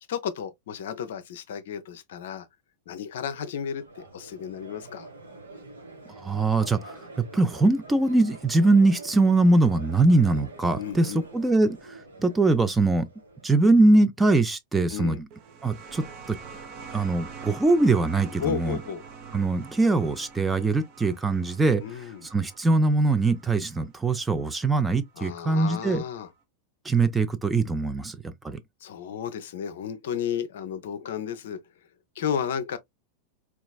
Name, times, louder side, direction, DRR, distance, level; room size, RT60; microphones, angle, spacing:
voice 1, 0.1-2.5 2.9-5.1 10.8-11.3 14.9-15.2 18.4-19.0 21.8-22.3 25.2-26.3 28.8-31.6 32.2-32.8, left 8 dB, 60° left, 0.5 m, -33 dB
Crowd, 3.7-13.9, right 2 dB, 75° right, 1.1 m, -46 dB
voice 2, 6.2-13.1 13.4-15.2 15.6-16.4 16.9-18.8 19.3-26.0 26.8-28.6, right 2 dB, 10° right, 0.4 m, -22 dB
sound 1, 15.3-24.6 25.7-25.8, right 5 dB, 40° right, 0.8 m, -45 dB
3.9 x 2.3 x 2.3 m
figure-of-eight pair, 90°, 0 cm